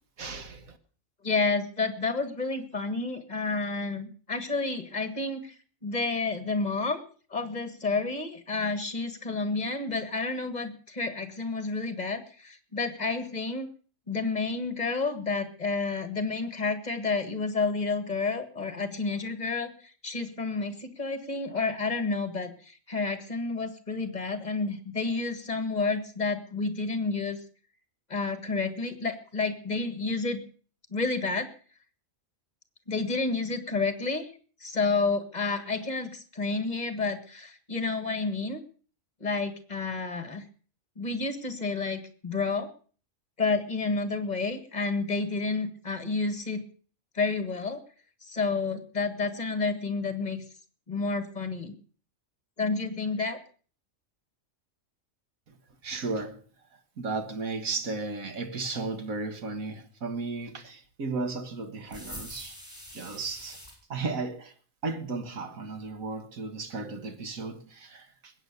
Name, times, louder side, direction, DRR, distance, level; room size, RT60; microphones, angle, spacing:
voice 1, 0.2-0.8 55.8-56.4 57.0-62.6 62.9-63.6 63.9-64.5 64.8-68.3, right 3 dB, 90° right, 2.0 m, -34 dB
voice 2, 1.2-5.5 5.8-7.0 7.3-13.7 14.1-27.4 28.1-30.4 30.9-31.5 32.9-34.3 34.6-38.6 39.2-40.4 41.0-42.7 43.4-46.6 47.2-47.8 48.2-50.4 50.9-51.7 52.6-53.4, left 3 dB, 30° left, 1.8 m, -30 dB
sound 1, 61.9-63.7, equal, 10° left, 6.1 m, -44 dB
20.5 x 9.0 x 6.8 m
omnidirectional pair, 1.4 m